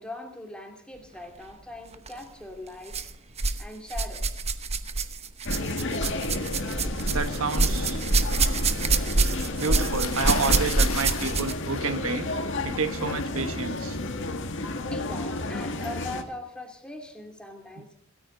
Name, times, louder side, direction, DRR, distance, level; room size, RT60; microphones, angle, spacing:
voice 1, 0.0-3.0 3.6-4.2 14.9-17.9, left 2 dB, 5° left, 3 dB, 2.8 m, -40 dB
sound 1, 1.9-2.1 2.9-3.6 3.9-11.7 12.6-12.7 13.5-13.6, right 3 dB, 30° right, 1.0 m, -26 dB
sound 2, 5.5-16.2, left 2 dB, 60° left, 1.9 m, -32 dB
voice 2, 7.1-8.0 9.6-12.3 12.6-14.0, right 4 dB, 75° right, 9 dB, 1.4 m, -29 dB
sound 3, 10.0-14.8, left 4 dB, 80° left, 1.3 m, -37 dB
26.5 x 14.0 x 4.0 m, 0.70 s
head